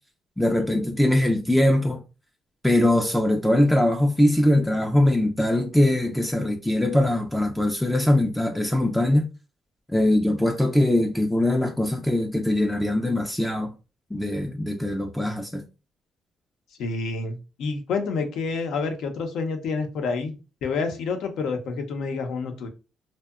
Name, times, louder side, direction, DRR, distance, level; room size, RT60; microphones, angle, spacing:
voice 1, 0.4-2.0 2.6-9.3 9.9-13.7 14.1-15.7, left 1 dB, 5° left, 0.3 m, -22 dB
voice 2, 16.8-22.7, left 4 dB, 80° left, 0.6 m, -28 dB
2.7 x 2.1 x 2.3 m
cardioid pair, 90°, 0 cm